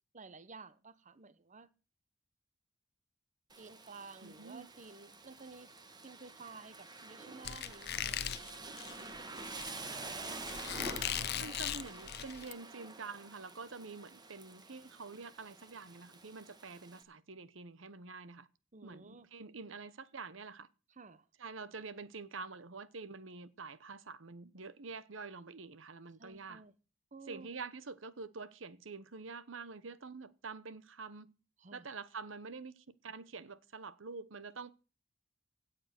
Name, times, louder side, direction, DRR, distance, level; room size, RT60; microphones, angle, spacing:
voice 1, 0.1-1.7 3.6-9.7 18.7-19.3 20.9-21.3 26.2-26.7 27.1-27.5 31.6-31.9, right 4 dB, 40° right, 1.0 m, -53 dB
Rain, 3.5-17.0, right 3 dB, 20° right, 1.8 m, -48 dB
voice 2, 4.2-4.7 11.3-18.5 18.8-20.7 21.4-26.6 27.3-31.3 31.7-34.7, right 4 dB, 75° right, 1.0 m, -47 dB
Squeak, 7.4-12.5, left 10 dB, 55° left, 0.8 m, -39 dB
17.0 x 7.9 x 6.0 m
head